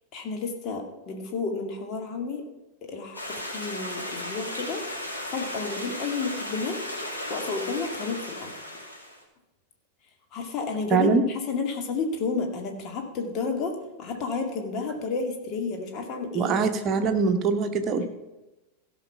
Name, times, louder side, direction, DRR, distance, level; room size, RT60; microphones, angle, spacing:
voice 1, 0.1-2.4 2.9-4.8 5.3-6.8 7.3-8.5 10.3-16.6 17.9-18.1, left 4 dB, 35° left, 3 dB, 2.2 m, -31 dB
Stream, 3.1-9.2, left 1 dB, 90° left, 2.5 m, -35 dB
voice 2, 10.9-11.2 16.3-18.1, right 5 dB, 30° right, 6 dB, 1.2 m, -23 dB
16.0 x 5.9 x 5.7 m, 1.0 s
figure-of-eight pair, 90°, 0 cm